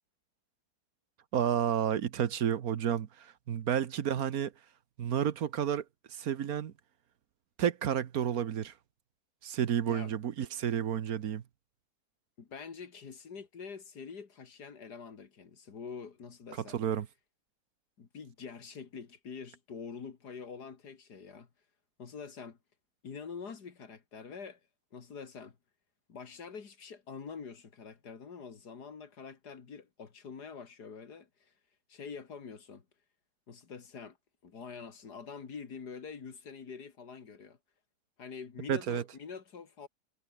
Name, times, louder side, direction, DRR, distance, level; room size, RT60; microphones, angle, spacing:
voice 1, 1.3-4.5 5.0-6.7 7.6-8.7 9.4-11.4 16.7-17.1 38.7-39.0, right 9 dB, 65° right, 1.4 m, -31 dB
voice 2, 12.4-16.8 18.0-21.5 22.0-22.6 23.0-24.6 24.9-25.6 26.1-31.5 31.9-32.9 33.5-34.2 34.4-37.6 38.2-39.9, left 5 dB, 80° left, 2.7 m, -45 dB
omnidirectional pair, 1.7 m